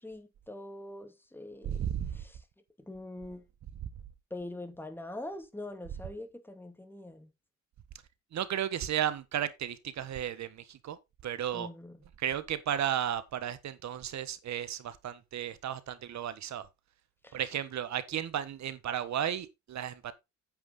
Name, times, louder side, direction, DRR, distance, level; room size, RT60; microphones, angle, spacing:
voice 1, 0.0-1.9 2.1-2.4 2.9-3.4 4.3-7.3 11.5-12.0 17.2-17.4, left 1 dB, 5° left, 2.4 m, -43 dB
voice 2, 1.6-2.2 8.3-11.0 11.2-11.7 12.2-16.7 17.3-20.1, right 10 dB, 65° right, 1.6 m, -34 dB
9.0 x 8.6 x 4.0 m
cardioid pair, 90°, 30 cm